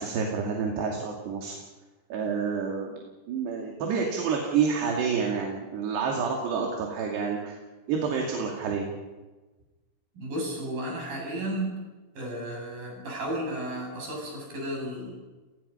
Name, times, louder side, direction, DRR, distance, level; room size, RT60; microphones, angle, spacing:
voice 1, 0.0-1.6 2.1-3.0 3.3-7.6 7.9-8.9, right 6 dB, 75° right, 0 dB, 4.6 m, -28 dB
voice 2, 10.2-11.8 12.1-15.2, right 1 dB, 55° right, -1 dB, 9.4 m, -33 dB
29.5 x 19.0 x 5.7 m, 1.2 s
omnidirectional pair, 4.9 m